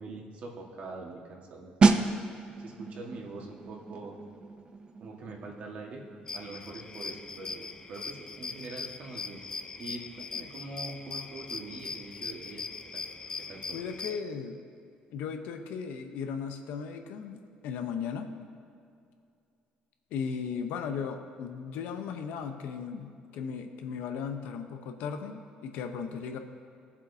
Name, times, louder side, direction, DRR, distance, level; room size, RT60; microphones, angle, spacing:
voice 1, 0.0-2.1 2.6-4.2 5.0-6.0 6.3-9.4 9.8-12.7 12.9-13.0 13.5-13.8, right 3 dB, 50° right, 0 dB, 1.6 m, -43 dB
sound 1, 1.8-12.3 12.6-12.8, right 4 dB, 30° right, 0.6 m, -32 dB
sound 2, 6.3-14.2, left 4 dB, 25° left, 0.4 m, -40 dB
voice 2, 13.7-14.6 15.1-18.3 20.1-26.4, left 6 dB, 90° left, 6 dB, 0.8 m, -36 dB
18.0 x 7.3 x 2.7 m, 2.4 s
cardioid pair, 135°, 3 cm